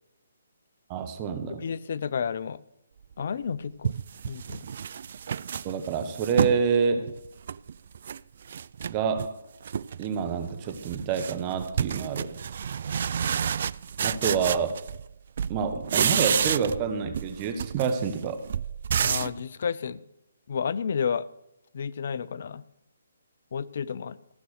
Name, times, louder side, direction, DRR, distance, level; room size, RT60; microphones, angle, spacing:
voice 1, 0.9-1.7 5.6-7.1 8.9-9.3 10.0-12.3 13.3-13.4 14.0-14.8 15.5-18.4, right 6 dB, 30° right, 8 dB, 1.2 m, -27 dB
voice 2, 1.6-2.6 3.2-3.9 4.3-4.7 19.0-20.0 20.5-21.3 21.7-22.6 23.5-24.2, left 6 dB, 55° left, 17 dB, 0.6 m, -31 dB
sound 1, 3.2-3.3 3.8-6.7 7.1-8.2 8.5-9.3 9.6-10.1 10.4-15.1 15.4-16.9 17.1-19.4, right 7 dB, 55° right, 0.3 m, -30 dB
14.5 x 6.2 x 6.4 m, 0.84 s
figure-of-eight pair, 145°, 0 cm